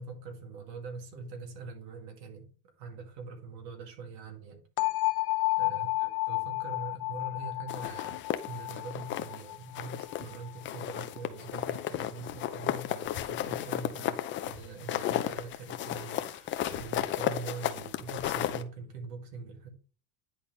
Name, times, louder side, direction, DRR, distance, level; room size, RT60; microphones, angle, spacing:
voice 1, 0.0-2.5 2.8-4.6 5.6-8.2 8.5-19.7, right 4 dB, 85° right, 3 dB, 2.3 m, -43 dB
sound 1, 4.8-10.6, left 23 dB, 45° left, 0.8 m, -32 dB
sound 2, 7.7-9.4 9.8-10.4 10.6-18.6, left 12 dB, 25° left, 0.4 m, -34 dB
10.0 x 4.1 x 3.2 m, 0.38 s
supercardioid pair, 125°, 49 cm